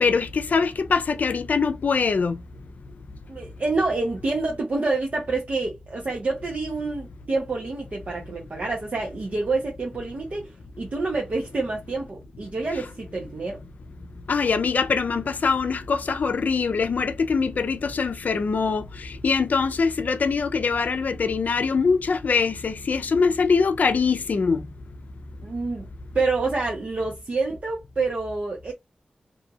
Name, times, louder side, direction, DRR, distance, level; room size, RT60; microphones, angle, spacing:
voice 1, 0.0-2.4 14.3-24.6, left 5 dB, 70° left, 0.4 m, -23 dB
voice 2, 3.3-10.5 10.8-13.6 25.4-25.9 26.1-28.7, right 3 dB, 60° right, 0.8 m, -27 dB
2.7 x 2.3 x 2.7 m
wide cardioid pair, 65°, 3 cm